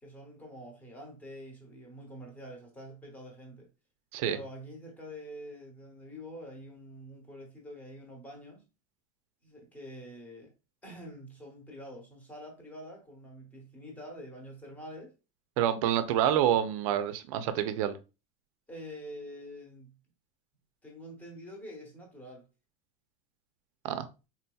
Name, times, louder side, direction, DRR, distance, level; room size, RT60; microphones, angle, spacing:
voice 1, 0.0-3.7 4.2-8.7 9.4-10.5 10.8-15.1 18.7-20.0 20.8-22.5, equal, 10° left, 0.9 m, -46 dB
voice 2, 15.6-17.9 23.8-24.1, right 10 dB, 70° right, 0.5 m, -27 dB
3.8 x 2.7 x 2.2 m
supercardioid pair, 160°, 18 cm